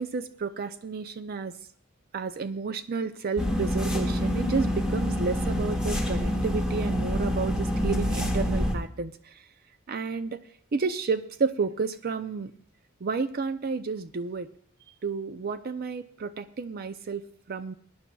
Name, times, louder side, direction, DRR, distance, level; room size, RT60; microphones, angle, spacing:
voice 1, 0.0-1.5 2.1-9.4 9.9-10.4 10.7-12.5 13.0-14.5 15.0-17.2 17.5-17.7, right 4 dB, 45° right, 11 dB, 0.4 m, -31 dB
sound 1, 3.4-8.7, equal, 5° right, 1.4 m, -27 dB
21.0 x 10.5 x 2.3 m, 0.64 s
head